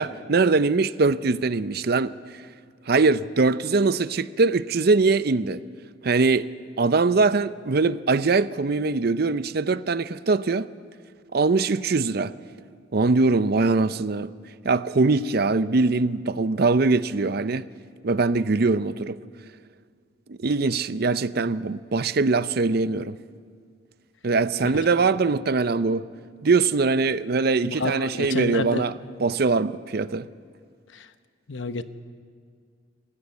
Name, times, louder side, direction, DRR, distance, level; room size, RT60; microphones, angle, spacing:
voice 1, 0.0-2.1 2.9-5.6 6.0-6.5 6.8-10.7 11.3-12.3 12.9-14.3 14.6-17.7 18.0-19.2 20.3-23.2 24.2-26.1 26.4-28.9 29.2-30.3, right 3 dB, 55° right, 0.6 m, -22 dB
voice 2, 27.6-28.8 30.9-31.1 31.5-31.8, left 2 dB, 90° left, 1.0 m, -29 dB
27.5 x 15.0 x 8.3 m
head